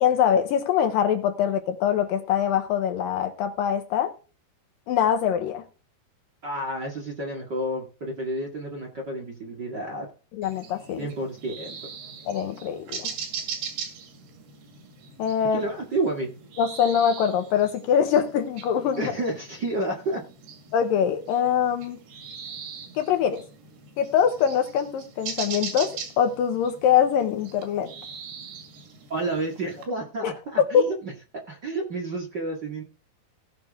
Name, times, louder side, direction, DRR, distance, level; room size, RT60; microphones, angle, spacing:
voice 1, 0.0-4.1 4.9-5.6 10.3-11.1 12.3-13.1 15.2-15.6 16.6-19.1 20.7-22.0 23.0-23.4 24.0-27.9 30.2-30.3 30.7-30.9, left 8 dB, 70° left, 2.4 m, -23 dB
voice 2, 6.4-10.1 11.0-11.8 15.5-16.3 19.0-20.2 29.1-31.1 31.5-32.8, right 2 dB, 35° right, 1.9 m, -30 dB
sound 1, 10.4-29.9, right 6 dB, 85° right, 4.1 m, -40 dB
17.5 x 6.0 x 3.6 m
omnidirectional pair, 4.5 m